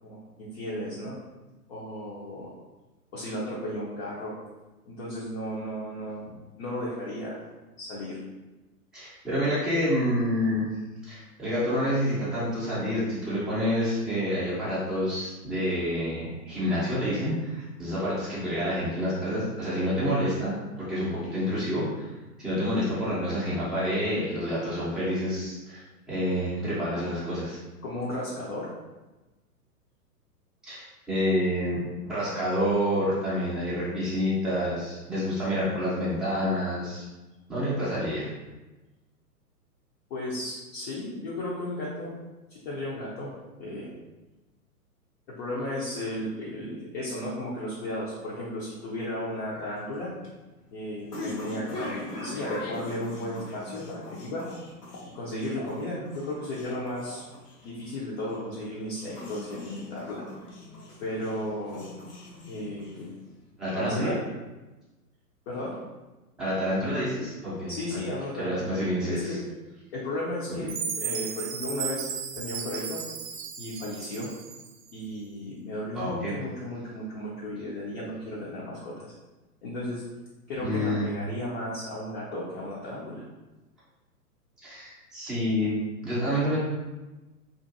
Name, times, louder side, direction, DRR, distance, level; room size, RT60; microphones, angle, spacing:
voice 1, 0.0-1.2 1.7-2.5 3.1-4.3 4.9-6.2 6.6-7.4 7.8-8.2 27.8-28.7 40.1-42.1 42.5-43.3 43.6-43.9 45.4-50.1 50.7-54.4 55.1-57.2 57.6-60.2 61.0-61.9 62.5-63.1 63.7-64.2 65.5-65.7 67.7-68.8 69.1-69.4 69.9-72.1 72.4-73.0 73.6-74.3 74.9-79.1 79.6-80.0 80.5-83.2, left 1 dB, 45° left, -6 dB, 0.7 m, -34 dB
voice 2, 8.9-10.7 11.0-22.1 22.4-27.6 30.6-37.0 37.5-38.3 63.6-64.1 66.4-68.0 68.4-69.4 70.5-70.7 75.9-76.3 80.5-81.1 84.6-85.8 86.0-86.6, equal, ahead, -11 dB, 0.5 m, -28 dB
sound 1, 49.8-63.3, left 1 dB, 75° left, 1.0 m, -41 dB
Chime, 70.7-74.9, right 7 dB, 60° right, 0.5 m, -35 dB
2.6 x 2.5 x 2.5 m, 1.1 s
hypercardioid pair, 120°, 47 cm